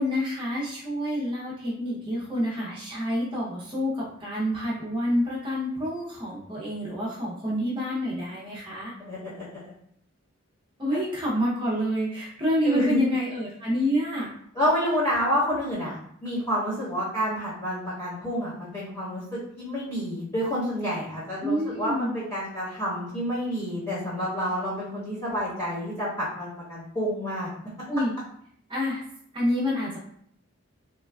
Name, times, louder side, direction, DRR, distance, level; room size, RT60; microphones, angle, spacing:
voice 1, 0.0-8.9 10.8-14.3 21.4-22.2 27.9-28.1 28.7-29.0 29.3-30.0, equal, 25° right, -6 dB, 0.6 m, -28 dB
voice 2, 9.0-9.7 12.6-13.0 14.5-27.5, equal, 20° left, -11 dB, 1.1 m, -29 dB
3.1 x 2.2 x 2.2 m, 0.66 s
head